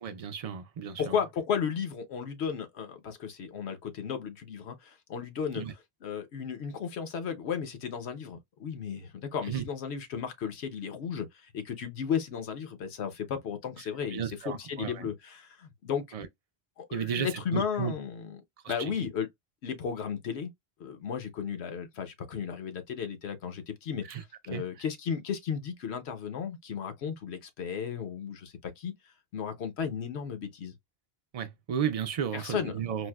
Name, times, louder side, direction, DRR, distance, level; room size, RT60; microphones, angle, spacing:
voice 1, 0.0-1.2 5.5-5.7 9.4-9.6 14.1-15.1 16.1-16.3 16.9-17.9 18.6-18.9 24.0-24.2 24.5-24.7 31.3-33.1, right 8 dB, 55° right, 0.4 m, -34 dB
voice 2, 1.0-5.6 6.0-16.0 16.8-18.4 18.7-19.3 19.6-20.5 20.8-24.0 24.5-28.9 29.3-30.7 32.3-32.8, left 7 dB, 85° left, 1.0 m, -34 dB
4.5 x 2.1 x 2.2 m
omnidirectional pair, 1.1 m